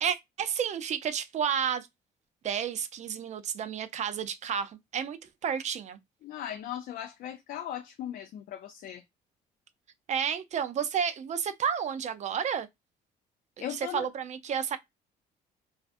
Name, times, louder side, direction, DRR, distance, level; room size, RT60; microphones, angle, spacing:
voice 1, 0.0-1.9 2.4-6.0 10.1-12.7 13.7-14.8, right 8 dB, 45° right, 0.4 m, -31 dB
voice 2, 6.2-9.0 13.6-14.1, left 11 dB, 60° left, 0.4 m, -38 dB
2.4 x 2.4 x 2.3 m
cardioid pair, 110°, 17 cm